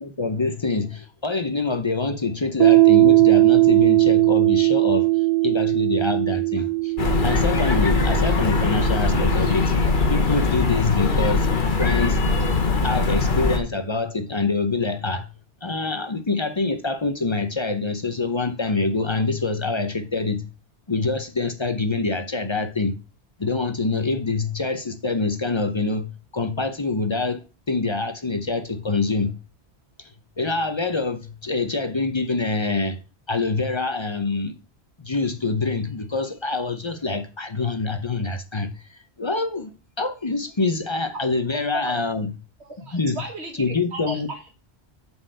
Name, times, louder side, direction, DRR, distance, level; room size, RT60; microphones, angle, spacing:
voice 1, 0.0-6.9 7.2-9.7 10.1-11.5 11.8-12.2 12.8-15.3 15.6-20.5 20.9-23.0 23.4-29.4 30.0-30.1 30.4-33.0 33.3-34.6 35.0-39.7 40.0-42.3 42.9-43.2 43.6-44.3, left 3 dB, 30° left, 0.7 m, -25 dB
Piano, 2.6-9.8, right 19 dB, 40° right, 0.8 m, -19 dB
sound 1, 7.0-13.6, left 3 dB, 50° left, 1.3 m, -21 dB
voice 2, 42.6-44.5, right 2 dB, 85° right, 1.9 m, -35 dB
7.5 x 4.5 x 6.5 m
omnidirectional pair, 1.1 m